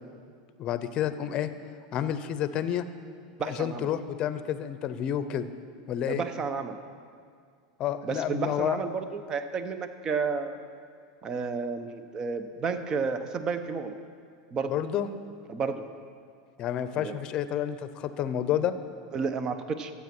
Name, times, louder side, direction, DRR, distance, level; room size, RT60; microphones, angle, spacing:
voice 1, 0.6-1.5 1.9-2.9 3.5-5.5 5.9-6.2 7.8-8.8 14.7-15.1 16.6-18.7, left 10 dB, 40° left, 12 dB, 0.7 m, -29 dB
voice 2, 3.4-3.9 6.1-6.8 8.0-10.7 11.2-13.9 14.5-14.7 15.5-15.8 17.0-17.2 19.1-19.9, right 5 dB, 30° right, 10 dB, 0.8 m, -31 dB
12.0 x 8.3 x 6.0 m, 2.2 s
supercardioid pair, 125°, 2 cm